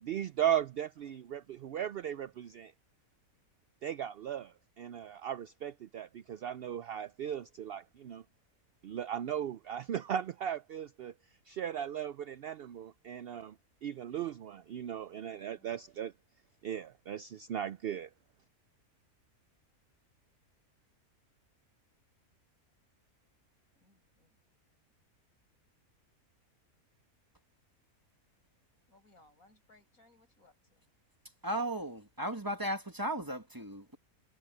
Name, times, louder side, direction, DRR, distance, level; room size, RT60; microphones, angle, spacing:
voice 1, 0.0-2.7 3.8-8.2 8.8-11.1 11.5-13.6 13.8-16.1 16.6-18.1, right 10 dB, 70° right, 0.5 m, -37 dB
voice 2, 15.3-15.7 23.7-24.4 28.9-30.9, left 2 dB, 70° left, 7.4 m, -65 dB
voice 3, 31.4-34.0, right 1 dB, 15° right, 1.6 m, -36 dB
omnidirectional pair, 1.5 m